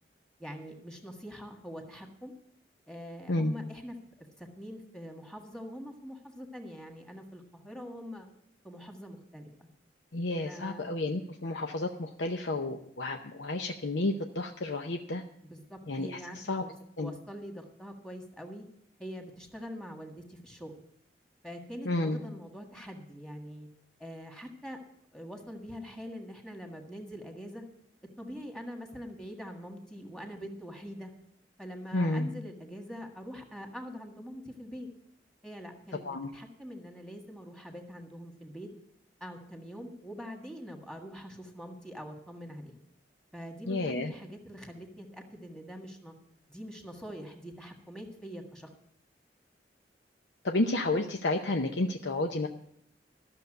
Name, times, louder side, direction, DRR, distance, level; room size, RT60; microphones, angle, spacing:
voice 1, 0.4-2.3 2.9-4.0 4.4-8.3 8.6-9.7 10.4-10.8 15.4-16.7 17.0-18.6 19.0-20.7 21.4-23.7 24.0-24.8 25.1-27.6 28.2-31.1 31.6-34.9 35.4-36.1 36.3-38.7 39.2-42.7 43.3-46.1 46.5-48.7, equal, 5° left, 2 dB, 1.7 m, -44 dB
voice 2, 10.1-15.2 15.9-16.6 17.0-17.1 21.8-22.2 31.9-32.3 36.0-36.3 43.7-44.1 50.4-52.5, left 2 dB, 80° left, 4 dB, 0.8 m, -31 dB
13.0 x 6.9 x 7.8 m, 0.70 s
head